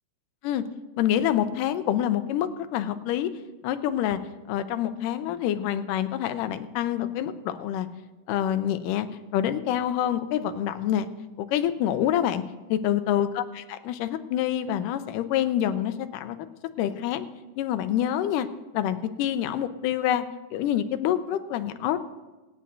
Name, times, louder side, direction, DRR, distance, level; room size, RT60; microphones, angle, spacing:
voice 1, 1.0-3.3 3.6-4.2 4.5-7.9 8.3-9.1 9.3-11.1 11.4-12.4 12.7-16.4 16.8-17.3 17.6-18.5 18.7-20.2 20.5-22.0, left 11 dB, 85° left, 10 dB, 2.2 m, -26 dB
26.0 x 9.2 x 2.7 m, 1.2 s
omnidirectional pair, 3.9 m